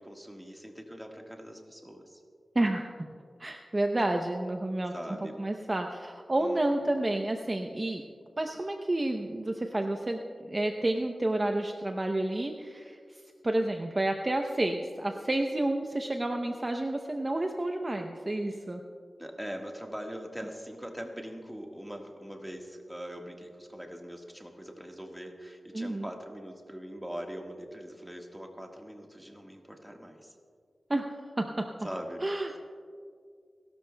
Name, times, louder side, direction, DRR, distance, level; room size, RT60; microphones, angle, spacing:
voice 1, 0.0-2.2 4.9-5.4 6.4-6.8 19.2-30.3 31.8-32.2, equal, 5° right, 1 dB, 1.5 m, -42 dB
voice 2, 2.5-2.9 3.4-4.9 5.4-8.0 8.4-18.8 25.7-26.1 30.9-31.1 31.4-31.7 32.2-32.6, right 1 dB, 25° right, 3 dB, 0.7 m, -30 dB
29.5 x 12.5 x 2.3 m, 2.2 s
wide cardioid pair, 115°, 0 cm